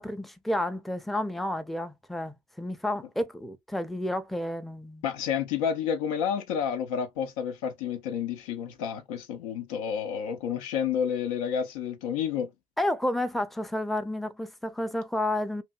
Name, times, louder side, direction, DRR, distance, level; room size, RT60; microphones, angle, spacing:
voice 1, 0.0-5.0 12.8-15.6, left 1 dB, ahead, 0.5 m, -31 dB
voice 2, 5.0-12.5, left 8 dB, 75° left, 0.5 m, -30 dB
2.6 x 2.6 x 2.3 m
figure-of-eight pair, 50°, 18 cm